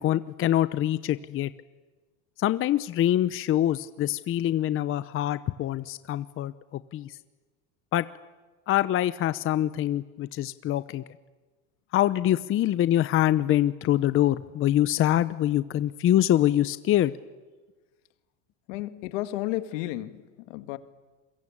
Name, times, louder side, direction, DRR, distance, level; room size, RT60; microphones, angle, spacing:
voice 1, 0.0-1.5 2.4-7.2 7.9-8.1 8.7-11.0 11.9-17.1, left 12 dB, 35° left, 0.8 m, -25 dB
voice 2, 18.7-20.2 20.5-20.8, left 16 dB, 75° left, 1.8 m, -32 dB
28.0 x 23.0 x 8.7 m
supercardioid pair, 125°, 38 cm